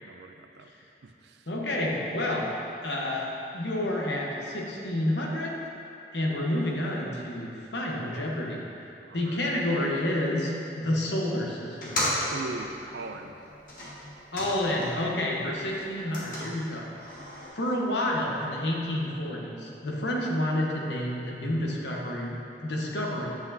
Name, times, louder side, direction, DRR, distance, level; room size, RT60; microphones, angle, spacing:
voice 1, 0.0-0.7 1.0-1.5 9.0-9.5 12.3-13.4 14.7-14.8, right 3 dB, 75° right, 6 dB, 0.4 m, -40 dB
voice 2, 1.5-2.5 2.8-5.6 6.1-12.1 14.3-16.9 17.5-23.3, left 1 dB, 85° left, -2 dB, 1.1 m, -29 dB
sound 1, 11.7-15.2 15.5-17.5, left 1 dB, 50° left, 1.5 m, -35 dB
7.7 x 7.7 x 2.8 m, 2.8 s
head